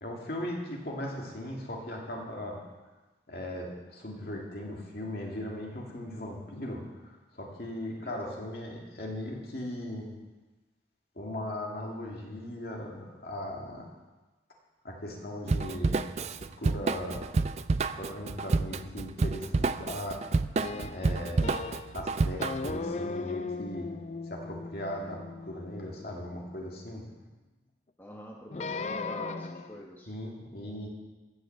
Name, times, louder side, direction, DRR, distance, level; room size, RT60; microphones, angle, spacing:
voice 1, 0.0-2.6 3.3-10.1 11.2-13.9 14.8-17.5 17.8-20.2 20.9-21.5 21.9-23.9 24.3-27.0 30.1-30.9, left 1 dB, 60° left, -1 dB, 2.4 m, -38 dB
voice 2, 8.0-8.4 28.0-30.1, equal, 10° left, -2 dB, 1.3 m, -46 dB
Drum kit / Drum, 15.5-22.8, right 3 dB, 40° right, 0.3 m, -29 dB
sound 1, 20.6-22.0 22.4-26.7 28.5-29.8, left 3 dB, 40° left, 0.4 m, -37 dB
14.5 x 6.4 x 7.2 m, 1.2 s
head